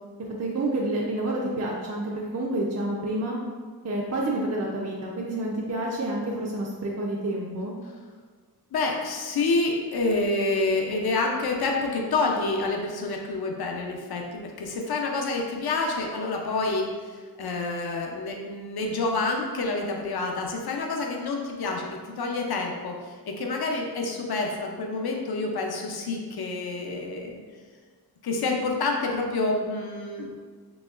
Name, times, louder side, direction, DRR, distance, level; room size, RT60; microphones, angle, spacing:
voice 1, 0.2-3.4 3.8-7.8, right 1 dB, 40° right, -3 dB, 0.4 m, -29 dB
voice 2, 8.7-27.4 28.2-30.4, left 3 dB, 65° left, 1 dB, 0.5 m, -28 dB
4.0 x 2.9 x 2.4 m, 1.5 s
wide cardioid pair, 80°, 40 cm